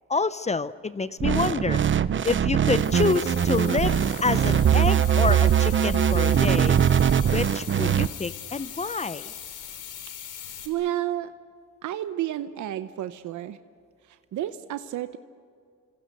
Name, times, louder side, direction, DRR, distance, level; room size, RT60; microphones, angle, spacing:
voice 1, 0.1-1.8 2.2-6.8 7.3-9.3, left 4 dB, 25° left, 15 dB, 0.6 m, -27 dB
sound 1, 1.2-8.1, right 9 dB, 40° right, 0.8 m, -21 dB
sound 2, 2.7-10.7, left 9 dB, 90° left, 3.2 m, -40 dB
voice 2, 10.6-11.3 11.8-13.6 14.1-15.2, right 12 dB, 75° right, 11 dB, 0.9 m, -31 dB
28.5 x 26.5 x 6.7 m, 2.2 s
cardioid pair, 90°, 30 cm